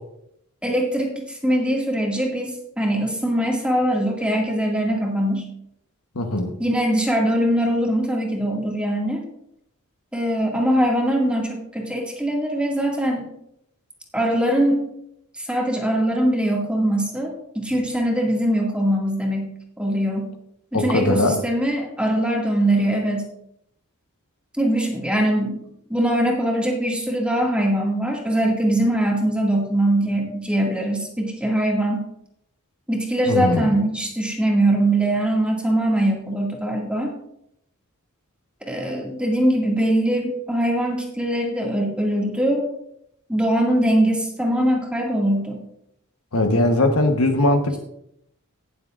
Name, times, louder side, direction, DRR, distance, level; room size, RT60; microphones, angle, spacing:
voice 1, 0.6-5.5 6.6-9.2 10.1-13.3 14.1-14.9 15.4-19.5 19.8-20.3 20.7-23.3 24.6-25.6 25.9-32.0 32.9-37.1 38.6-42.7 43.3-45.6, right 1 dB, 5° right, -1 dB, 2.1 m, -22 dB
voice 2, 6.1-6.5 20.7-21.4 33.3-33.7 46.3-47.8, left 2 dB, 80° left, 6 dB, 1.2 m, -20 dB
19.0 x 7.3 x 2.5 m, 0.76 s
head